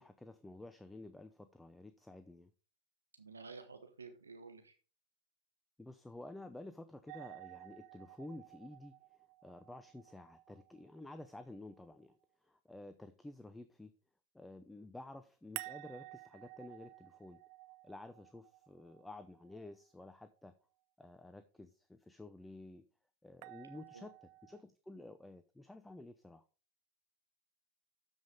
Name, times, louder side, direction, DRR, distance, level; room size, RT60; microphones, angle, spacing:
voice 1, 0.0-2.5 5.8-8.9 9.4-12.1 12.4-13.9 14.3-17.4 17.8-20.5 21.0-22.8 23.2-26.4, left 2 dB, 5° left, 10 dB, 0.6 m, -52 dB
voice 2, 3.2-4.7 23.9-24.1, right 4 dB, 90° right, 7 dB, 1.1 m, -52 dB
sound 1, 7.1-12.0 15.6-19.7 23.4-24.6, right 20 dB, 55° right, 0.5 m, -53 dB
12.5 x 5.3 x 3.8 m, 0.35 s
hypercardioid pair, 95°, 0 cm